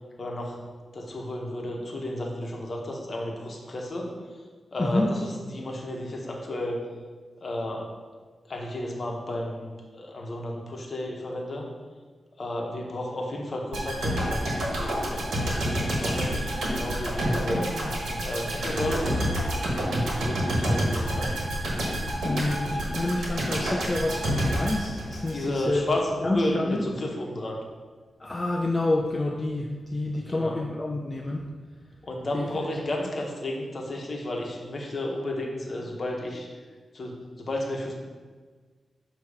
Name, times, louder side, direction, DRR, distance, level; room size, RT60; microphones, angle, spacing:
voice 1, 0.2-0.6 0.9-4.1 4.7-6.8 7.4-7.9 8.5-11.7 12.4-17.7 18.2-19.2 20.0-21.4 25.3-27.6 30.1-30.6 32.0-36.5 36.9-37.9, left 1 dB, 45° left, 0 dB, 1.1 m, -32 dB
voice 2, 4.8-5.1 22.2-25.9 26.2-26.8 28.2-31.5 32.3-32.7, left 2 dB, 25° left, -1 dB, 0.5 m, -28 dB
sound 1, 13.7-25.7 26.1-26.2, equal, 90° right, 1.4 m, -28 dB
7.1 x 3.0 x 4.8 m, 1.5 s
wide cardioid pair, 90°, 0 cm